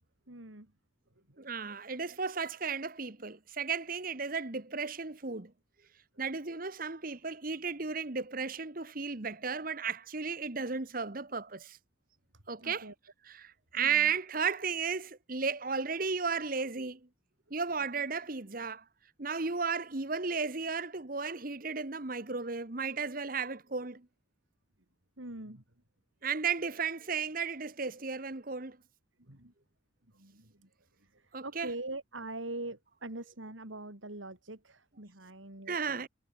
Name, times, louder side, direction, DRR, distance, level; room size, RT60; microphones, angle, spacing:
voice 1, 0.3-0.7 1.2-1.5 12.3-12.9 13.7-14.1 25.2-25.6 29.2-29.5 30.1-30.7 31.0-36.0, right 2 dB, 80° right, 4.5 m, -44 dB
voice 2, 1.4-5.5 6.2-11.8 12.5-12.9 13.4-17.0 17.5-18.8 19.2-24.1 26.2-28.8 31.3-31.7 35.7-36.1, right 5 dB, 45° right, 1.3 m, -34 dB
head